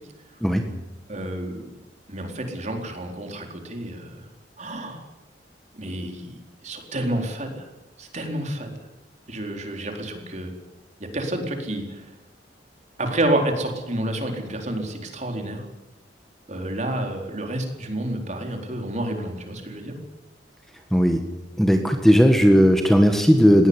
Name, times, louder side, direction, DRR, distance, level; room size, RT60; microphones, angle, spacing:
voice 1, 1.1-1.7 2.1-4.2 4.6-5.0 5.7-6.4 6.6-7.7 8.0-8.8 9.3-10.5 11.0-12.1 13.0-15.7 16.5-20.0, right 1 dB, 40° right, 4 dB, 4.2 m, -29 dB
voice 2, 20.9-21.2 21.6-23.7, equal, ahead, 5 dB, 1.6 m, -16 dB
20.0 x 17.0 x 9.7 m, 0.98 s
head